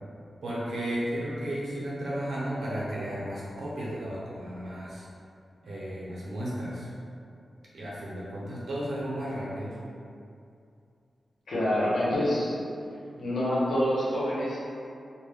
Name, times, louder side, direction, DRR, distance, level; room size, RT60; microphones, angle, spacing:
voice 1, 0.4-5.0 5.6-6.9 7.7-9.7, right 1 dB, 85° right, -7 dB, 0.7 m, -34 dB
voice 2, 11.5-12.6 13.2-14.6, left 1 dB, 90° left, -8 dB, 0.8 m, -26 dB
2.2 x 2.1 x 3.4 m, 2.5 s
wide cardioid pair, 110°, 0 cm